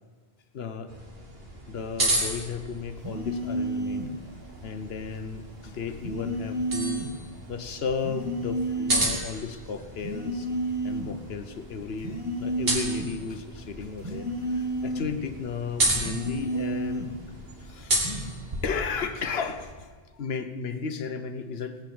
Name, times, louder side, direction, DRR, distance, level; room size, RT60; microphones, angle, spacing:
voice 1, 0.5-0.9 1.7-4.1 4.6-7.0 7.5-10.5 10.8-17.1 17.6-18.3 18.6-21.8, left 5 dB, 70° left, 9 dB, 1.1 m, -34 dB
sound 1, 0.9-19.7, right 1 dB, 65° right, 2.4 m, -33 dB
sound 2, 3.0-4.2 6.0-7.2 8.0-9.2 10.0-11.2 12.0-13.2 14.0-15.2 16.0-17.2 18.0-18.3, right 1 dB, 30° right, 2.3 m, -31 dB
18.0 x 6.4 x 8.7 m, 1.4 s
omnidirectional pair, 1.1 m